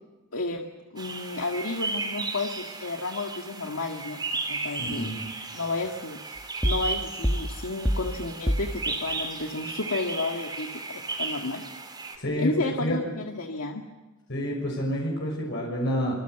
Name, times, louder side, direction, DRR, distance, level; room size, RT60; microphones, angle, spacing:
voice 1, 0.3-0.6 0.9-4.2 4.5-5.1 5.5-11.6 12.4-13.8, left 2 dB, 80° left, 2 dB, 1.9 m, -32 dB
sound 1, 1.0-12.2, right 3 dB, 20° right, 3.9 m, -35 dB
voice 2, 4.8-5.2 12.2-13.0 14.3-16.1, equal, 55° left, -1 dB, 6.5 m, -29 dB
sound 2, 6.6-7.0 7.2-8.2 8.5-8.8, equal, 5° left, 1.5 m, -26 dB
26.0 x 24.5 x 8.2 m, 1.2 s
head